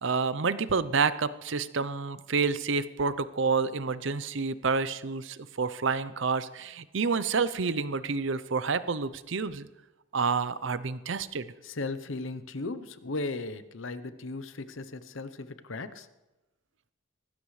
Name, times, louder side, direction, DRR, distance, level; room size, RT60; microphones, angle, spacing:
voice 1, 0.0-9.7 10.1-11.5, right 4 dB, 60° right, 14 dB, 0.6 m, -29 dB
voice 2, 11.6-16.1, left 3 dB, 65° left, 12 dB, 0.8 m, -36 dB
19.5 x 15.5 x 3.3 m, 1.0 s
head